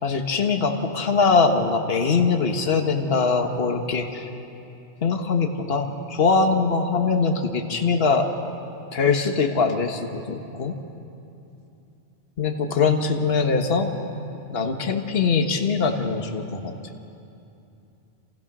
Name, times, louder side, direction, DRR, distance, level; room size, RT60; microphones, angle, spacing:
voice 1, 0.0-4.3 5.0-8.3 8.9-10.7 12.4-13.9 14.5-16.7, left 4 dB, 50° left, 4 dB, 1.7 m, -22 dB
30.0 x 28.0 x 6.2 m, 2.8 s
omnidirectional pair, 1.3 m